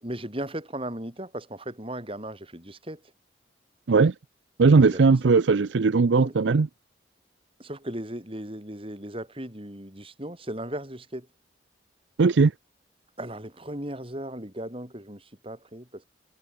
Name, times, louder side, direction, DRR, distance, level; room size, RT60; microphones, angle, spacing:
voice 1, 0.0-3.0 4.7-5.2 6.1-6.4 7.6-11.3 13.2-16.1, right 1 dB, 30° right, 5.6 m, -37 dB
voice 2, 4.6-6.7 12.2-12.5, right 4 dB, 80° right, 0.5 m, -18 dB
head